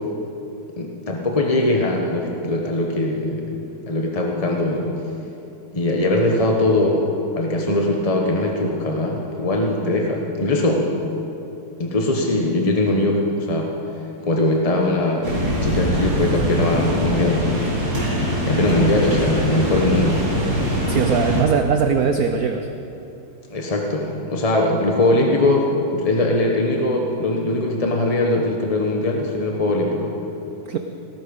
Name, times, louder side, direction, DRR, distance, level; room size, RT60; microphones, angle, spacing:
voice 1, 0.8-4.9 5.7-7.1 7.3-10.9 11.8-13.7 14.3-17.5 18.4-20.2 23.5-25.6 25.9-30.1, left 2 dB, 30° left, 0 dB, 0.7 m, -21 dB
sound 1, 15.2-21.4, equal, 45° right, 4.0 m, -22 dB
voice 2, 20.9-22.7 30.7-30.8, right 6 dB, 70° right, 7 dB, 0.9 m, -20 dB
18.5 x 12.0 x 5.3 m, 2.9 s
omnidirectional pair, 2.3 m